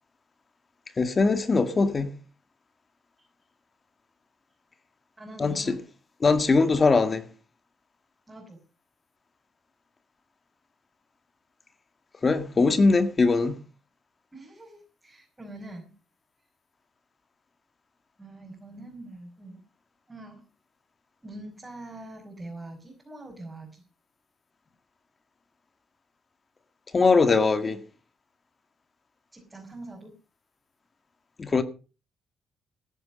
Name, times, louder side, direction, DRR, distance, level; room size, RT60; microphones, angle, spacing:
voice 1, 1.0-2.1 5.4-5.8 6.2-7.2 12.2-13.6 26.9-27.8 31.4-31.6, left 4 dB, 35° left, 1.8 m, -21 dB
voice 2, 5.2-5.8 8.3-8.6 14.3-15.9 18.2-19.6 20.1-20.4 21.2-23.8 29.3-30.1, right 2 dB, 15° right, 5.3 m, -43 dB
15.5 x 10.0 x 5.3 m
cardioid pair, 90°, 0 cm